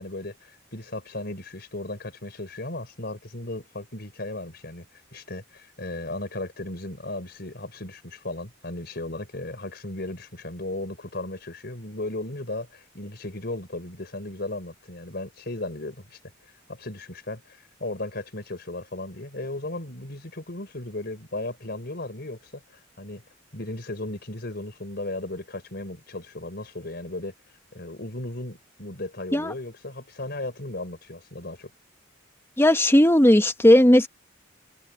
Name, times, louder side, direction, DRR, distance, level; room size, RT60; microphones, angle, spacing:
voice 1, 0.0-4.9 5.1-16.2 16.7-23.2 23.5-27.3 27.7-31.7, left 2 dB, 55° left, 4.1 m, -36 dB
voice 2, 32.6-34.1, left 1 dB, 10° left, 1.0 m, -16 dB
head